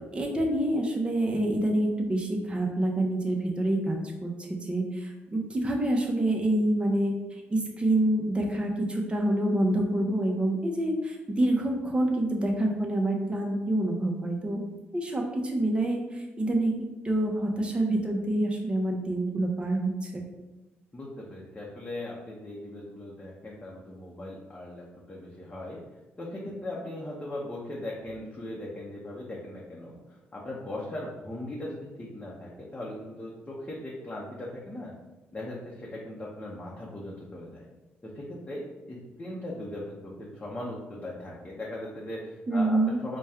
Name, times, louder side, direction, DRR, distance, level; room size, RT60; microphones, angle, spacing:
voice 1, 0.1-7.1 7.5-14.6 14.9-20.2 42.5-43.0, right 1 dB, 25° right, 1 dB, 0.8 m, -27 dB
voice 2, 20.9-25.8 26.2-34.9 35.3-37.7 38.0-38.6 38.9-43.2, left 1 dB, 25° left, -4 dB, 0.8 m, -39 dB
4.2 x 2.2 x 3.5 m, 1.1 s
cardioid pair, 85°, 4 cm